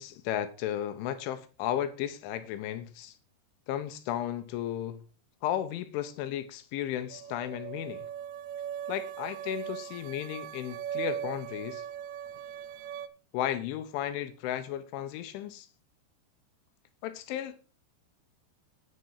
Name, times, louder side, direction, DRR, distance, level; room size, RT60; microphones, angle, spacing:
voice 1, 0.0-3.1 3.7-5.0 5.4-8.1 8.9-11.8 13.3-15.7 17.0-17.6, left 11 dB, 85° left, 3.5 m, -34 dB
sound 1, 7.1-13.1, right 9 dB, 80° right, 2.9 m, -39 dB
10.0 x 9.9 x 4.8 m
omnidirectional pair, 5.4 m